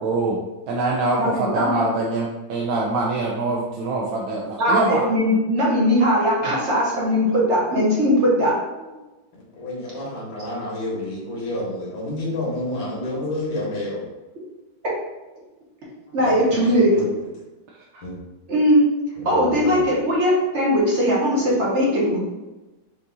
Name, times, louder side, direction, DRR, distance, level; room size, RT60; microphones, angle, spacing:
voice 1, 0.0-0.4 0.7-5.0, right 2 dB, 75° right, -2 dB, 1.3 m, -24 dB
voice 2, 1.2-1.8 4.6-8.9 16.1-16.9 18.5-18.9 19.2-22.2, equal, 50° right, -5 dB, 0.9 m, -19 dB
voice 3, 9.6-14.0 16.2-17.1 18.0-18.1 19.2-19.8, left 1 dB, 65° left, -6 dB, 1.9 m, -29 dB
5.8 x 2.6 x 2.6 m, 1.1 s
omnidirectional pair, 2.4 m